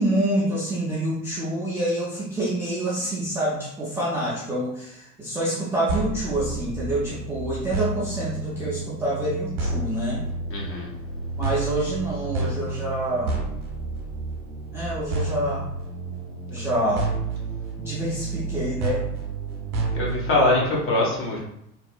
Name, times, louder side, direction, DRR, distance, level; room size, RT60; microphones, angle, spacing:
voice 1, 0.0-10.2 11.4-13.4 14.7-15.6 16.5-17.1 17.8-19.0, right 1 dB, 5° right, -9 dB, 0.5 m, -27 dB
sound 1, 5.9-20.6, right 3 dB, 70° right, 0.8 m, -30 dB
voice 2, 10.5-10.9 19.9-21.4, left 2 dB, 30° left, -4 dB, 1.0 m, -22 dB
2.7 x 2.5 x 2.2 m, 0.79 s
figure-of-eight pair, 75°, 45 cm